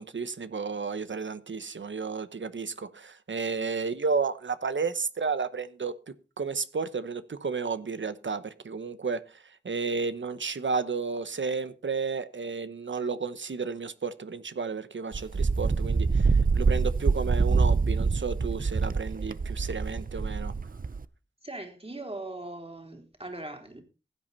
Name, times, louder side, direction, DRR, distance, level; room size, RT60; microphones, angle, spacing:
voice 1, 0.0-9.4 9.6-20.5, right 5 dB, 85° right, 1.0 m, -32 dB
Wind, 15.1-21.0, right 4 dB, 50° right, 0.7 m, -25 dB
voice 2, 21.4-23.8, right 2 dB, 30° right, 3.6 m, -40 dB
15.5 x 9.0 x 4.1 m
wide cardioid pair, 55°, 19 cm